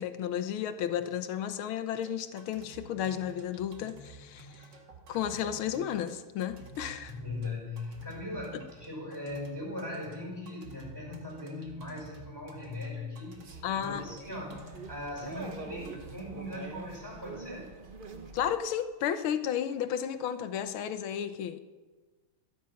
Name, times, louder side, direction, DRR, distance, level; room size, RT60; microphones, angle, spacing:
voice 1, 0.0-4.7 5.1-7.2 8.5-8.6 13.6-14.1 18.3-21.6, left 9 dB, 75° left, 10 dB, 1.8 m, -33 dB
sound 1, 2.0-16.6, right 3 dB, 55° right, 2.6 m, -51 dB
voice 2, 7.1-17.7, left 2 dB, 10° right, -2 dB, 5.8 m, -39 dB
sound 2, 13.4-18.5, right 4 dB, 35° right, 0.9 m, -45 dB
22.0 x 10.0 x 5.9 m, 1.3 s
omnidirectional pair, 2.4 m